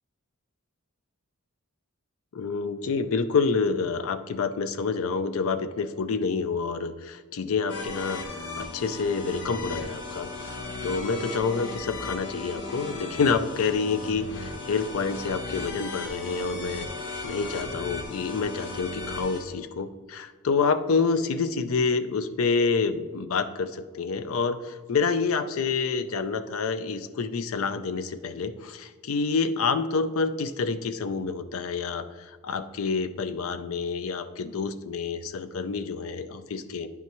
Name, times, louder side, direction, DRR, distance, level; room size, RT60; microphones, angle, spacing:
voice 1, 2.3-8.2 8.6-10.3 10.8-16.9 17.2-32.1 32.4-36.9, left 4 dB, 70° left, 11 dB, 0.5 m, -28 dB
sound 1, 7.7-19.4, left 3 dB, 50° left, 1.1 m, -36 dB
9.6 x 5.8 x 3.0 m, 1.4 s
head